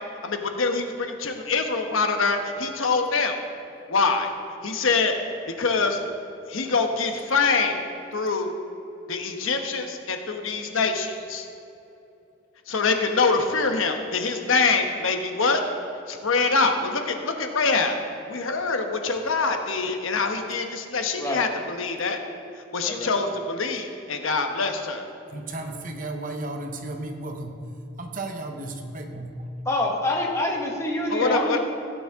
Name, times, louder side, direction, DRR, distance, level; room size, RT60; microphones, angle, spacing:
voice 1, 0.2-3.4 3.9-4.3 4.6-5.2 5.6-6.0 6.5-7.8 8.1-8.5 9.1-11.5 12.7-15.6 16.1-18.0 18.3-22.2 22.7-25.1 31.1-31.6, left 4 dB, 85° left, 5 dB, 1.1 m, -24 dB
voice 2, 22.8-23.2 29.6-31.6, left 1 dB, 15° left, -1 dB, 1.5 m, -26 dB
voice 3, 25.3-27.6 28.0-29.4, right 2 dB, 40° right, 4 dB, 0.9 m, -34 dB
16.0 x 9.3 x 3.6 m, 2.8 s
head